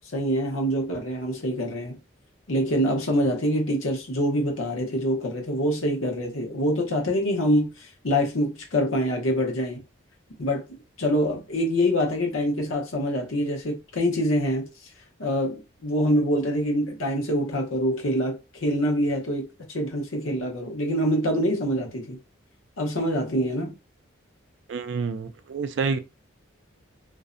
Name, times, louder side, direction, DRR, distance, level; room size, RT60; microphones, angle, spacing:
voice 1, 0.1-2.0 2.5-9.8 10.4-10.6 11.0-14.7 15.2-22.2 22.8-23.7, equal, 85° left, 0.8 m, -25 dB
voice 2, 24.7-26.0, right 5 dB, 60° right, 0.3 m, -28 dB
2.4 x 2.1 x 2.5 m
head